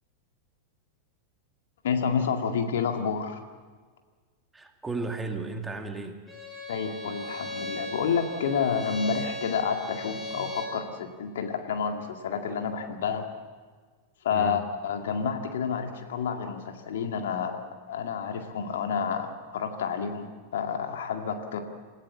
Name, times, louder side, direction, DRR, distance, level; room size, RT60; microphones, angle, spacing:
voice 1, 1.8-3.4 6.7-13.2 14.2-20.3 20.5-21.6, left 6 dB, 60° left, 5 dB, 2.1 m, -29 dB
voice 2, 4.5-6.2 14.3-14.7, right 3 dB, 10° right, 4 dB, 2.3 m, -34 dB
Bowed string instrument, 6.3-10.8, left 1 dB, 10° left, 7.3 m, -37 dB
28.0 x 15.5 x 7.5 m, 1.5 s
figure-of-eight pair, 90°, 0 cm